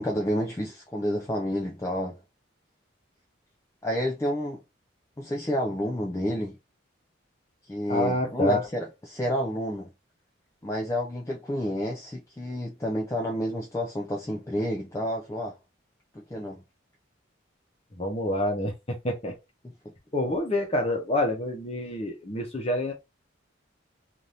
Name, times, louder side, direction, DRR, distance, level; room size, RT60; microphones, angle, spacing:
voice 1, 0.0-2.2 3.8-4.6 5.2-6.6 7.7-9.9 10.6-15.6 16.1-16.6, equal, 15° left, 0.4 m, -30 dB
voice 2, 7.9-8.7 17.9-19.4 20.1-22.9, left 1 dB, 30° left, 0.8 m, -27 dB
2.7 x 2.6 x 3.3 m
head